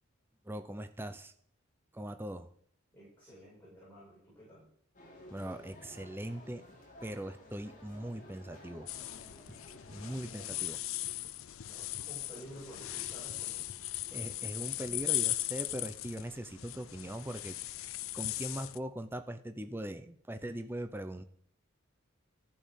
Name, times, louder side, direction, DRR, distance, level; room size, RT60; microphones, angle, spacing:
voice 1, 0.4-1.3 1.9-2.5 5.3-6.6 7.0-8.9 9.5-9.6 9.9-10.8 14.1-17.6 18.1-21.2, right 1 dB, 10° right, 9 dB, 0.6 m, -40 dB
voice 2, 2.9-4.7 10.3-10.7 11.6-13.9, equal, 10° left, -8 dB, 7.4 m, -52 dB
sound 1, 4.9-10.2, left 1 dB, 40° left, 3.7 m, -54 dB
sound 2, 8.9-18.8, left 15 dB, 70° left, 0.5 m, -38 dB
14.0 x 8.9 x 6.5 m, 0.64 s
head